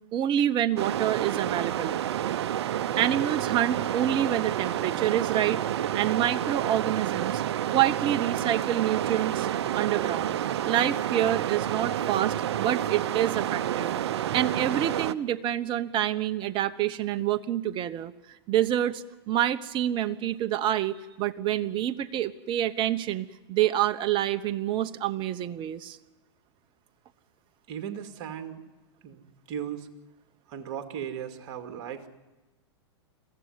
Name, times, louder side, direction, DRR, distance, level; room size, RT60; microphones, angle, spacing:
voice 1, 0.1-2.0 3.0-5.6 5.9-7.4 7.7-9.5 9.7-10.4 10.6-13.9 14.3-18.1 18.5-26.0, right 11 dB, 35° right, 11 dB, 1.0 m, -27 dB
sound 1, 0.8-15.1, right 11 dB, 70° right, 0.7 m, -29 dB
voice 2, 27.7-28.6 29.0-29.9 30.5-32.1, right 9 dB, 50° right, 6 dB, 2.4 m, -37 dB
21.5 x 15.5 x 9.5 m, 1.1 s
hypercardioid pair, 115°, 15 cm